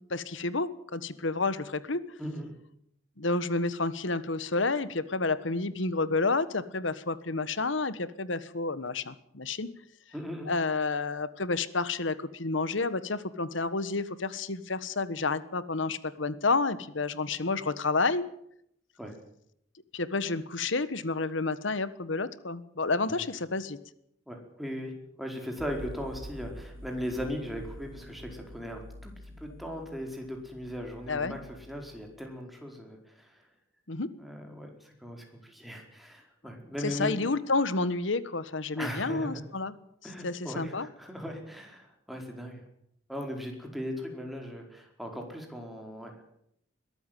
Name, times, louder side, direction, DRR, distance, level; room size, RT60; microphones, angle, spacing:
voice 1, 0.1-2.0 3.2-9.7 10.5-18.3 19.9-23.8 31.1-31.4 33.9-34.1 36.8-39.7 40.2-40.9, left 3 dB, 70° left, 15 dB, 1.3 m, -30 dB
voice 2, 2.2-2.5 10.1-10.5 19.0-19.2 23.1-23.2 24.3-24.9 25.2-33.4 34.2-37.2 38.8-39.4 40.0-42.6 43.1-46.1, equal, ahead, 2 dB, 4.7 m, -38 dB
sound 1, 25.6-32.4, equal, 80° right, 2.0 m, -47 dB
22.0 x 13.0 x 9.2 m, 0.73 s
head